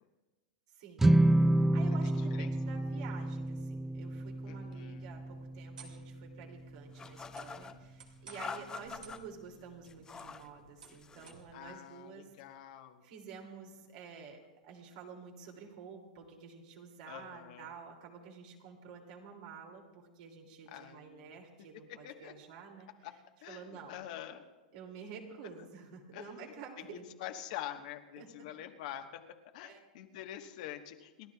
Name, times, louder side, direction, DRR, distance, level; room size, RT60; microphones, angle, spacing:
voice 1, 0.7-1.2 1.6-12.3 13.0-22.9 23.5-24.0 24.7-27.0 28.2-28.5 29.6-29.8, right 6 dB, 60° right, 1 dB, 2.7 m, -50 dB
sound 1, 1.0-7.4, right 1 dB, 10° right, 0.4 m, -30 dB
voice 2, 2.0-2.5 4.5-5.1 8.3-8.8 11.5-13.0 17.1-17.7 20.7-21.4 22.0-22.3 23.0-23.1 23.4-24.4 26.1-26.5 26.9-31.3, left 11 dB, 60° left, 5 dB, 1.3 m, -46 dB
sound 2, 3.2-11.7, right 5 dB, 85° right, 2.4 m, -59 dB
sound 3, 7.0-7.7 8.3-9.2 9.8-10.5 10.8-11.4, left 5 dB, 15° left, 0.7 m, -45 dB
29.0 x 12.0 x 2.4 m, 1.2 s
hypercardioid pair, 120°, 4 cm